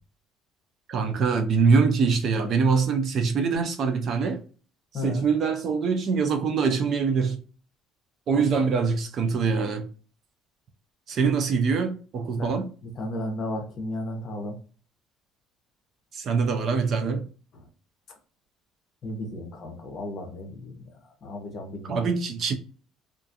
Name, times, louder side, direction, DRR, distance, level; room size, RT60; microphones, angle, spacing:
voice 1, 0.9-4.4 4.9-7.4 8.3-9.9 11.1-12.7 16.1-17.3 21.8-22.5, right 5 dB, 35° right, 0.3 m, -24 dB
voice 2, 4.9-5.3 8.3-8.4 12.3-12.6 13.0-14.5 19.0-20.8 21.2-22.0, left 1 dB, 35° left, 0.7 m, -34 dB
2.4 x 2.3 x 2.6 m
cardioid pair, 175°, 0 cm